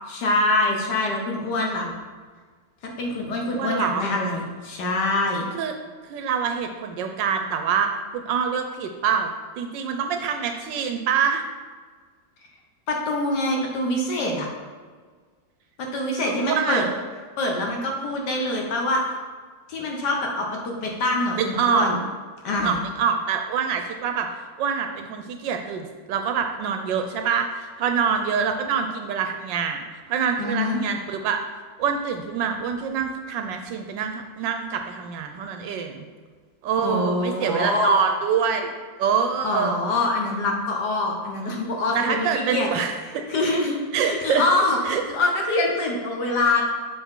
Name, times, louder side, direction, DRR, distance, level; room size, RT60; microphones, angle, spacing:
voice 1, 0.1-1.9 2.8-5.5 12.9-14.5 15.8-16.9 17.4-19.0 19.7-22.0 22.4-22.7 30.4-30.8 36.8-38.0 39.4-42.7 43.3-46.6, left 2 dB, 60° left, 0 dB, 1.4 m, -24 dB
voice 2, 3.5-4.0 5.5-5.7 6.1-11.4 16.2-16.8 21.4-21.8 22.5-24.3 24.6-31.4 31.8-36.0 36.6-38.7 39.0-39.8 41.9-43.2 43.9-44.4 44.8-45.0, right 7 dB, 75° right, 5 dB, 1.2 m, -25 dB
7.0 x 4.5 x 3.6 m, 1.5 s
omnidirectional pair, 2.2 m